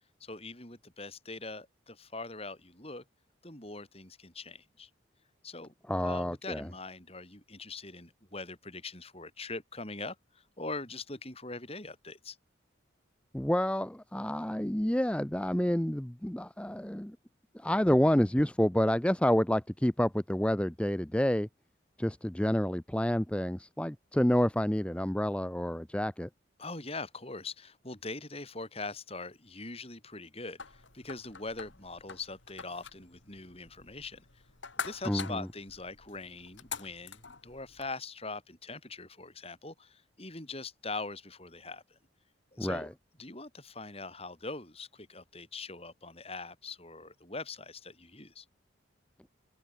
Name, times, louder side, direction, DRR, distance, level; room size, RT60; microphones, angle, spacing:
voice 1, 0.2-3.0 3.4-4.9 5.4-5.7 6.0-12.4 26.6-34.3 34.8-42.0 42.5-42.9 43.2-48.5, left 3 dB, 30° left, 7.0 m, -42 dB
voice 2, 5.9-6.7 13.3-17.2 17.5-21.5 22.0-26.3 35.1-35.5 42.6-42.9, equal, 5° left, 0.6 m, -29 dB
sound 1, 30.6-37.9, left 6 dB, 75° left, 2.4 m, -45 dB
open air
head